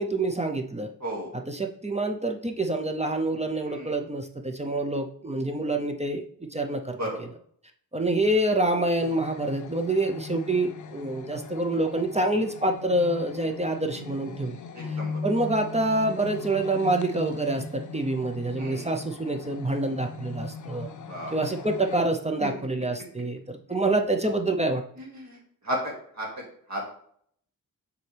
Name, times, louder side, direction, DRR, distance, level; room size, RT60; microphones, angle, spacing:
voice 1, 0.0-0.9 1.5-6.2 6.5-7.0 7.9-14.6 14.9-20.9 21.3-24.8, right 2 dB, 20° right, 4 dB, 0.6 m, -27 dB
voice 2, 1.0-1.3 3.6-3.9 7.0-7.2 14.7-15.2 18.6-18.9 21.1-21.3 22.4-22.5 25.0-26.9, equal, 50° right, -2 dB, 2.3 m, -34 dB
sound 1, 9.0-22.0, left 4 dB, 55° left, 0.6 m, -39 dB
6.8 x 4.1 x 3.4 m, 0.63 s
cardioid pair, 75°, 36 cm